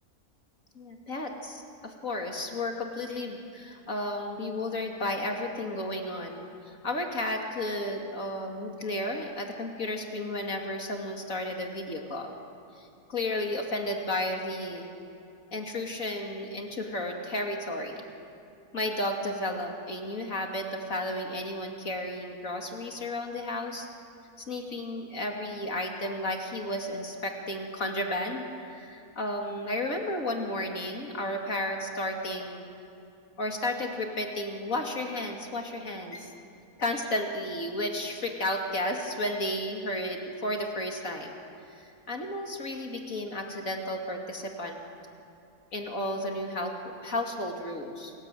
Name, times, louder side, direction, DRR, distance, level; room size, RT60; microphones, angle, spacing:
voice 1, 0.7-12.3 12.8-14.9 15.5-18.0 18.7-23.9 24.5-32.7 33.4-36.3 36.8-41.3 41.8-44.8 45.7-48.1, left 1 dB, 65° left, 2 dB, 2.9 m, -33 dB
29.0 x 20.5 x 9.1 m, 2.7 s
omnidirectional pair, 1.5 m